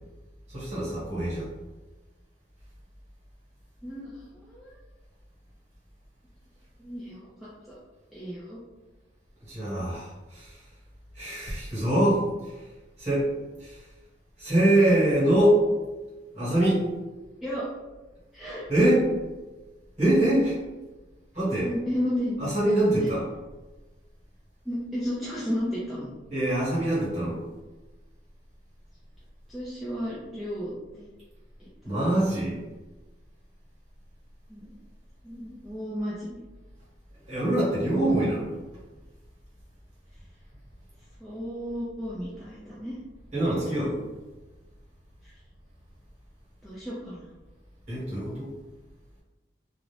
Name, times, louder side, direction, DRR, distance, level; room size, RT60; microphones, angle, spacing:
voice 1, 0.5-1.5 9.4-10.6 11.1-12.6 13.0-13.3 13.6-13.9 14.4-15.6 16.3-16.9 18.7-19.0 20.0-20.6 21.3-21.7 22.4-23.2 26.3-27.4 31.8-32.6 37.3-38.5 43.3-44.0 47.9-48.5, right 1 dB, 35° right, -10 dB, 1.2 m, -24 dB
voice 2, 3.8-4.7 6.8-7.5 8.1-8.6 17.4-17.6 18.3-18.7 21.6-22.4 23.0-23.1 24.7-26.1 29.5-31.1 31.6-31.7 34.5-34.7 35.2-36.4 41.2-43.0 45.2-45.3 46.6-47.3, equal, ahead, -9 dB, 0.4 m, -33 dB
2.4 x 2.0 x 3.1 m, 1.2 s
head